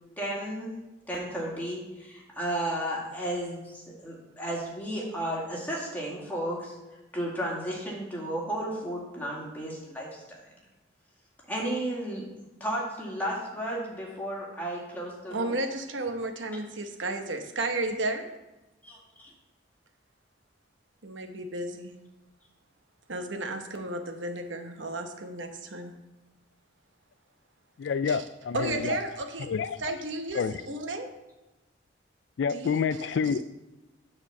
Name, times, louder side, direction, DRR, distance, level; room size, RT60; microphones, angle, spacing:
voice 1, 0.2-0.7 1.1-6.8 7.1-10.2 11.5-12.3 12.6-15.6 18.8-19.3, right 1 dB, 10° left, -4 dB, 2.2 m, -33 dB
voice 2, 15.3-18.3 21.0-22.0 23.1-25.9 28.1-28.2 28.5-29.5 29.8-31.1 32.5-32.8, right 2 dB, 80° right, 5 dB, 1.0 m, -33 dB
voice 3, 27.8-29.0 29.5-29.8 30.3-30.6 32.4-33.4, left 6 dB, 70° left, 14 dB, 0.4 m, -28 dB
8.8 x 4.3 x 6.9 m, 1.0 s
head